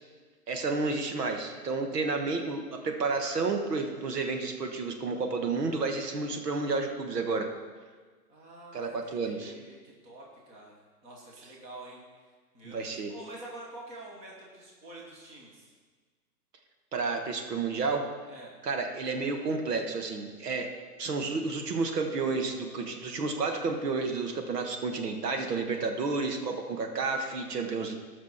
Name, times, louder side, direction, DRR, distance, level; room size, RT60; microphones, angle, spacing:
voice 1, 0.5-7.5 8.7-9.6 12.6-13.1 16.9-18.0 18.6-20.7 21.0-28.0, right 4 dB, 75° right, 4 dB, 1.6 m, -31 dB
voice 2, 8.3-12.0 12.5-15.7 18.3-18.5, right 2 dB, 15° right, -3 dB, 1.2 m, -47 dB
18.0 x 6.1 x 4.2 m, 1.4 s
hypercardioid pair, 160°, 48 cm